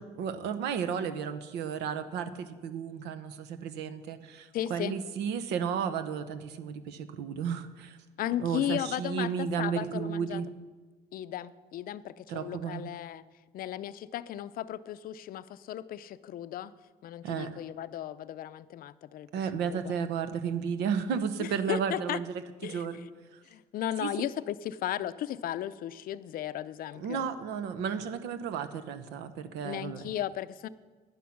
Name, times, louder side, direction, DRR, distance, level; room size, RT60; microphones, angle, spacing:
voice 1, 0.0-8.0 8.4-10.5 12.3-12.8 17.2-17.5 19.3-22.2 22.6-23.4 24.0-24.3 26.9-30.1, right 7 dB, 85° right, 11 dB, 0.9 m, -33 dB
voice 2, 4.5-4.9 8.2-10.4 11.1-13.2 13.5-16.7 17.0-19.3 19.7-19.9 21.4-22.2 22.6-23.1 23.5-27.3 29.6-30.7, left 12 dB, 60° left, 15 dB, 0.5 m, -35 dB
10.0 x 10.0 x 5.8 m, 1.4 s
cardioid pair, 110°, 17 cm